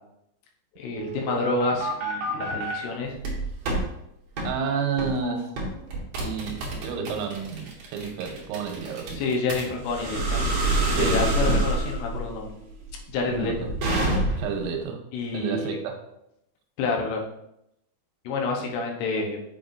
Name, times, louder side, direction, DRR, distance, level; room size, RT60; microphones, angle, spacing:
voice 1, 0.8-3.2 5.1-5.4 9.1-10.4 11.0-12.5 13.1-13.5 15.1-15.8 16.8-17.2 18.2-19.4, left 3 dB, 75° left, 0 dB, 2.8 m, -28 dB
sound 1, 1.0-2.7 3.2-3.8 4.4-4.5 5.0-5.2 5.6-14.6, right 2 dB, 70° right, 1.6 m, -27 dB
voice 2, 4.4-5.5 6.2-9.2 10.9-11.3 13.3-13.6 14.4-15.0 15.3-16.0, right 6 dB, 90° right, 3 dB, 3.2 m, -30 dB
7.3 x 5.6 x 2.6 m, 0.81 s
omnidirectional pair, 5.4 m